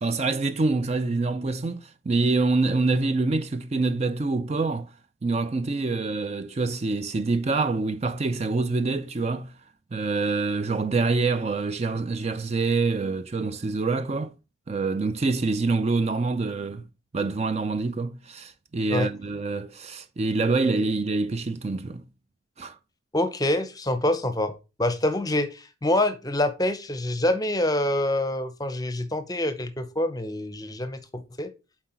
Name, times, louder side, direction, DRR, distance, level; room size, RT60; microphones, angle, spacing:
voice 1, 0.0-4.9 5.2-9.5 9.9-14.3 14.7-16.9 17.1-22.0 22.6-22.8, right 3 dB, 30° right, 0.4 m, -26 dB
voice 2, 23.1-31.5, left 1 dB, 20° left, 0.7 m, -26 dB
7.5 x 4.6 x 4.4 m
head